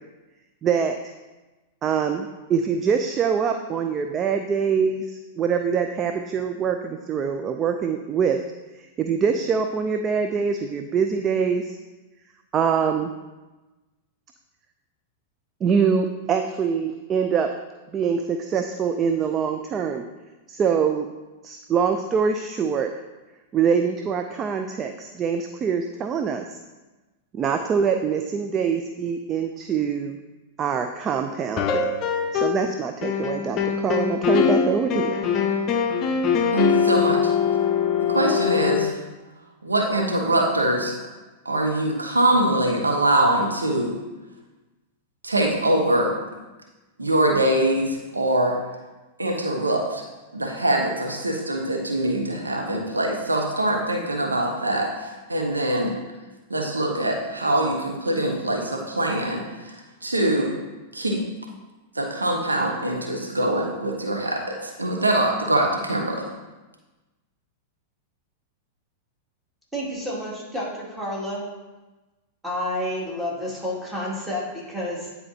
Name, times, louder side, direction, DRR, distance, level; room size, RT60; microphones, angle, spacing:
voice 1, 0.6-1.0 1.8-8.4 9.0-11.8 12.5-13.1 15.6-17.5 17.9-20.0 20.5-21.1 21.4-22.9 23.5-26.6 27.3-30.2 30.6-31.9 32.3-35.2, right 6 dB, 30° right, 6 dB, 0.4 m, -24 dB
sound 1, 31.6-32.7 33.0-38.9, left 7 dB, 35° left, 0.6 m, -22 dB
voice 2, 36.5-37.3 38.0-38.9 39.6-40.9 41.4-43.9 45.2-46.1 47.0-48.6 49.2-50.0 50.3-55.9 56.5-59.8 60.0-60.5 60.9-61.2 62.0-66.2, right 1 dB, 85° right, 1 dB, 0.9 m, -23 dB
voice 3, 69.7-71.4 72.4-75.1, left 1 dB, 5° right, -6 dB, 2.2 m, -30 dB
9.8 x 4.2 x 2.7 m, 1.1 s
figure-of-eight pair, 95°, 0 cm